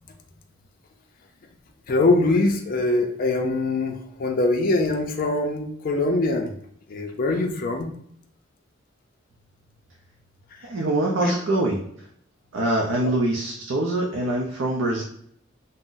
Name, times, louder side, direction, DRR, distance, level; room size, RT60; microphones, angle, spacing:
voice 1, 1.9-6.5 6.9-7.9 11.2-11.4, left 2 dB, 45° left, 2 dB, 0.4 m, -23 dB
voice 2, 10.6-11.8 12.5-15.0, right 1 dB, 80° right, -1 dB, 0.5 m, -24 dB
2.5 x 2.0 x 3.7 m, 0.69 s
head